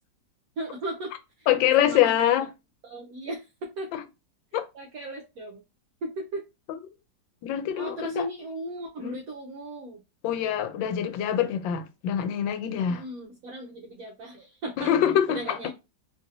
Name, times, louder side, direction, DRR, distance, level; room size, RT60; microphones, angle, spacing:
voice 1, 0.6-1.5 1.8-2.3 2.8-3.9 4.7-5.6 6.0-6.4 7.8-10.0 12.8-14.9 15.3-15.7, right 1 dB, 65° right, 0.9 m, -36 dB
voice 2, 1.5-2.5 3.9-4.0 4.5-4.7 6.7-6.8 7.4-8.3 9.0-9.2 10.2-13.0 14.8-15.7, left 10 dB, 85° left, 1.3 m, -25 dB
3.2 x 2.6 x 2.6 m
omnidirectional pair, 2.0 m